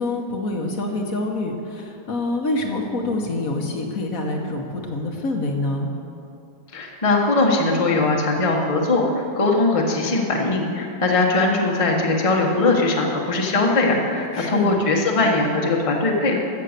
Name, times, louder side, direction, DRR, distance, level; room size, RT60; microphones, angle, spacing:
voice 1, 0.0-5.9 14.3-14.8, left 2 dB, 50° left, 2 dB, 1.5 m, -26 dB
voice 2, 6.7-16.4, left 2 dB, 20° left, 0 dB, 1.2 m, -20 dB
14.5 x 7.6 x 6.7 m, 2.6 s
omnidirectional pair, 1.9 m